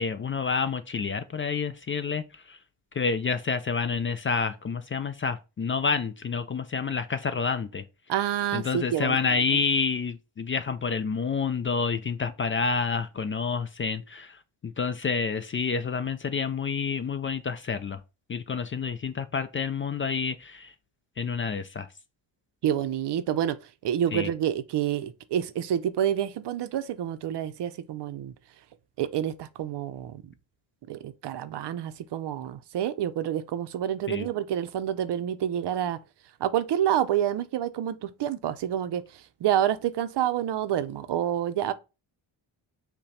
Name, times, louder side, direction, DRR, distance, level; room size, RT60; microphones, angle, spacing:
voice 1, 0.0-2.6 2.9-7.8 8.5-18.0 18.3-20.7 21.2-21.9 24.1-24.3 34.1-34.3, left 5 dB, 30° left, 0.4 m, -29 dB
voice 2, 8.1-9.6 22.6-23.6 23.8-28.3 29.0-30.3 30.9-36.0 36.4-41.7, right 10 dB, 60° right, 0.6 m, -28 dB
5.5 x 2.3 x 4.1 m
cardioid pair, 90°, 46 cm